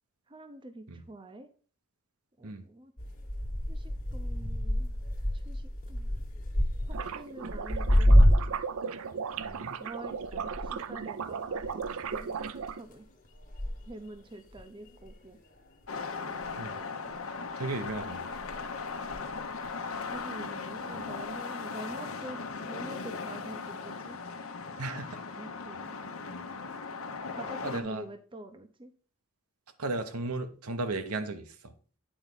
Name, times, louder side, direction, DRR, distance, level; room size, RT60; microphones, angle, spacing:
voice 1, 0.3-1.5 2.4-2.9 3.7-4.9 5.3-6.1 6.9-8.2 9.8-11.8 12.1-13.1 13.9-15.4 16.3-17.2 20.1-24.2 25.4-26.0 27.3-28.9, right 1 dB, 20° right, 8 dB, 0.6 m, -46 dB
sound 1, 3.0-8.8 9.1-16.2 16.4-17.2 17.9-19.7 20.1-20.5 21.2-21.3, equal, 35° left, 1.3 m, -29 dB
sound 2, 6.9-12.8, right 6 dB, 75° right, 0.5 m, -36 dB
voice 2, 9.4-9.8 16.6-16.8 17.6-18.3 24.8-25.2 27.6-28.0 29.8-31.7, right 2 dB, 90° right, 8 dB, 1.0 m, -35 dB
sound 3, 15.9-27.8, left 4 dB, 75° left, 0.9 m, -38 dB
8.9 x 4.6 x 3.9 m, 0.42 s
head